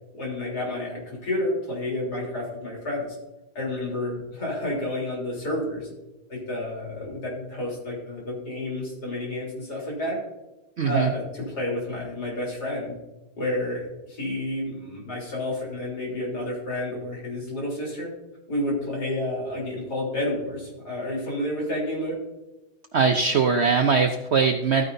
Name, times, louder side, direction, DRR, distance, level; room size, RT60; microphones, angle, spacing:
voice 1, 0.1-3.1 3.6-5.9 6.3-10.2 10.8-13.0 13.3-18.1 18.5-22.1, left 1 dB, 75° left, -3 dB, 4.1 m, -30 dB
voice 2, 10.8-11.1 22.9-24.8, right 5 dB, 60° right, 5 dB, 0.7 m, -21 dB
13.5 x 9.5 x 2.6 m, 1.0 s
omnidirectional pair, 1.8 m